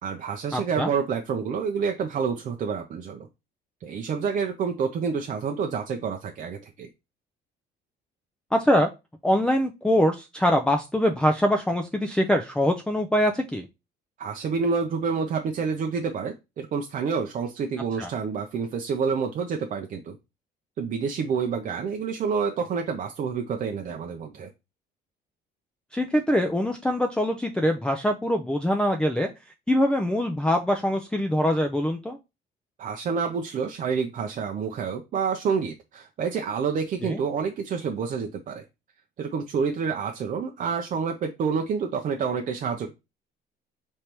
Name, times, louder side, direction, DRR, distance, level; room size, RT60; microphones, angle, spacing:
voice 1, 0.0-3.3 3.8-6.9 14.2-20.2 20.8-24.5 32.8-38.6 39.2-42.9, right 6 dB, 50° right, 4 dB, 0.6 m, -28 dB
voice 2, 0.5-0.9 8.5-8.9 9.2-13.7 18.0-18.1 25.9-29.3 29.7-32.2 37.0-37.2, equal, 5° left, 3 dB, 0.4 m, -23 dB
5.1 x 3.2 x 3.0 m, 0.25 s
cardioid pair, 110°, 17 cm